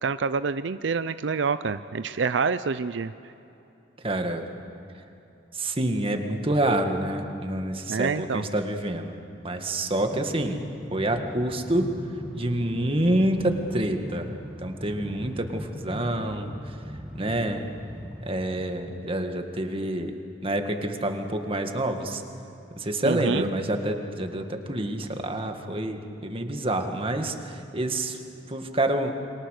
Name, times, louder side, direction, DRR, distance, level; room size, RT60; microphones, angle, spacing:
voice 1, 0.0-3.1 7.9-8.5 23.0-23.5, right 5 dB, 85° right, 12 dB, 0.5 m, -27 dB
voice 2, 4.0-4.4 5.5-9.2 9.4-10.6 10.9-11.9 12.3-14.3 14.6-16.5 17.1-17.7 18.2-20.1 20.4-22.2 22.8-28.2 28.5-29.1, right 1 dB, 30° right, 5 dB, 1.8 m, -27 dB
Train, 10.0-18.9, equal, 5° right, 1.9 m, -40 dB
29.0 x 23.5 x 6.6 m, 2.8 s
head